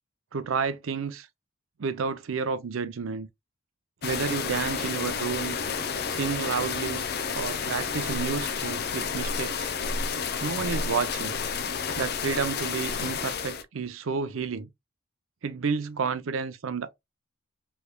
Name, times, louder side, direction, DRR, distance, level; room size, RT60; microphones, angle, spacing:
voice 1, 0.3-1.3 1.8-3.3 4.0-5.6 6.1-7.1 7.3-9.7 10.4-11.4 12.0-14.7 15.4-16.9, right 5 dB, 75° right, 0.5 m, -30 dB
sound 1, 4.0-13.6, left 6 dB, 50° left, 0.5 m, -30 dB
3.3 x 3.1 x 2.2 m
head